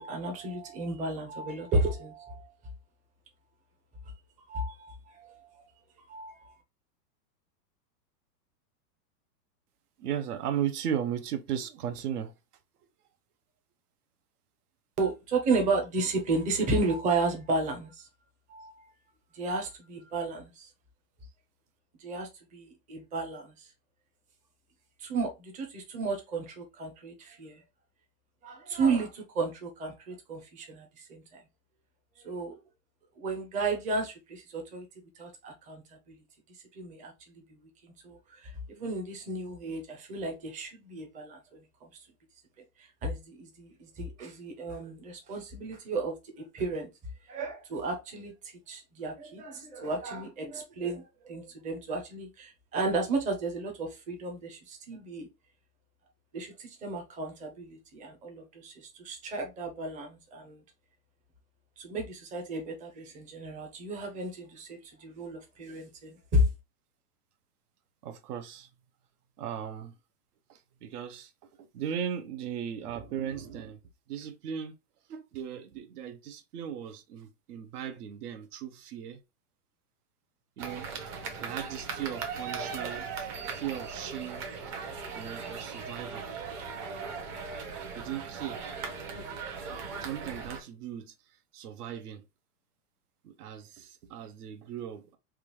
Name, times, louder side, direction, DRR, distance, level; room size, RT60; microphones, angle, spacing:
voice 1, 0.0-2.5 4.4-5.5 6.0-6.5 15.0-18.1 18.5-18.9 19.3-20.7 22.0-23.7 25.0-27.6 28.4-31.4 32.2-32.5 33.2-34.9 35.2-36.2 36.7-37.6 37.8-41.9 42.8-46.9 47.3-55.3 56.3-60.6 61.8-66.5, right 2 dB, 15° right, 0.6 m, -33 dB
voice 2, 10.0-12.3 68.0-68.7 69.4-69.9 70.5-71.3 71.6-73.8 74.1-74.7 75.1-79.2 80.6-80.9 81.4-84.5 85.1-86.3 87.9-88.6 90.0-91.1 91.5-92.2 93.2-95.2, right 9 dB, 65° right, 0.8 m, -37 dB
sound 1, 80.6-90.6, right 5 dB, 40° right, 1.0 m, -38 dB
3.6 x 2.3 x 3.0 m
hypercardioid pair, 140°, 49 cm